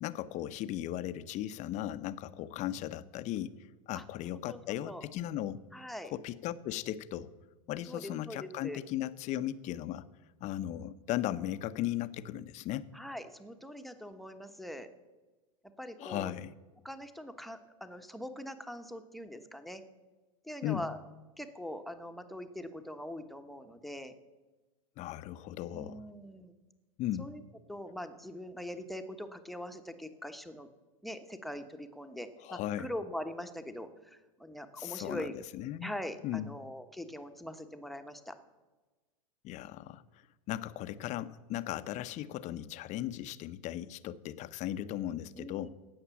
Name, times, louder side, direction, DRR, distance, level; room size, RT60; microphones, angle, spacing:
voice 1, 0.0-3.5 3.9-5.6 6.0-7.3 7.7-10.1 10.4-12.9 16.0-16.5 20.6-20.8 25.0-26.1 27.0-27.3 32.4-32.9 34.8-35.9 36.2-36.5 39.4-40.0 40.5-45.7, left 13 dB, 40° left, 13 dB, 0.7 m, -37 dB
voice 2, 4.3-5.0 5.7-6.1 7.9-8.8 12.9-14.9 15.8-16.4 16.8-19.8 20.4-21.0 21.4-24.1 25.7-26.5 27.2-27.4 27.7-30.7 31.0-35.3 35.8-38.3 45.4-45.7, left 1 dB, ahead, 7 dB, 1.1 m, -42 dB
17.5 x 6.6 x 7.1 m, 1.2 s
hypercardioid pair, 105°, 18 cm